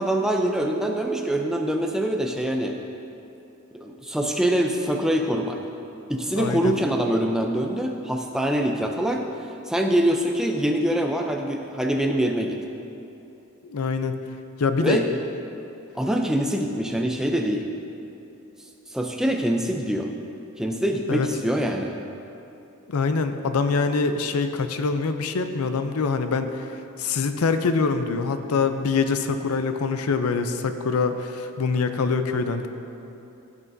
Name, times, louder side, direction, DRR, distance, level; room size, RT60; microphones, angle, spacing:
voice 1, 0.0-2.8 3.8-5.6 6.1-9.3 9.7-12.6 14.8-15.1 15.9-17.7 18.9-20.1 20.6-21.9, right 1 dB, ahead, 2 dB, 0.4 m, -24 dB
voice 2, 6.4-6.7 13.6-14.2 14.6-15.0 21.1-21.3 22.9-26.7 27.0-32.7, left 4 dB, 85° left, 8 dB, 0.5 m, -24 dB
14.5 x 6.2 x 2.7 m, 2.9 s
head